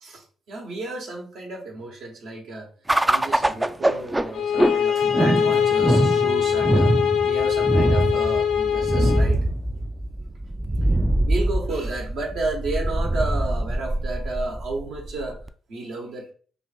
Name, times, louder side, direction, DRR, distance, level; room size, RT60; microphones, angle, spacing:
voice 1, 0.0-2.7 3.1-6.9 7.3-9.4 11.2-15.4 15.7-16.3, right 2 dB, 70° right, 0 dB, 1.1 m, -32 dB
sound 1, 2.9-15.5, right 1 dB, 15° right, 0.3 m, -23 dB
sound 2, 4.3-9.3, left 8 dB, 70° left, 0.5 m, -22 dB
2.9 x 2.5 x 4.1 m, 0.42 s
hypercardioid pair, 50°, 0 cm